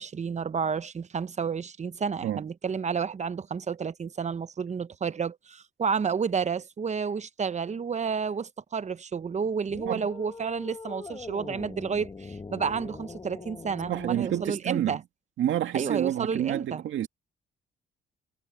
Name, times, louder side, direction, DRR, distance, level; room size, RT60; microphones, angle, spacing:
voice 1, 0.0-15.0 15.7-16.8, right 6 dB, 35° right, 0.9 m, -31 dB
sound 1, 9.7-14.5, left 4 dB, 25° left, 1.9 m, -42 dB
voice 2, 13.9-15.0 15.4-17.1, right 11 dB, 75° right, 2.3 m, -28 dB
cardioid pair, 90°, 20 cm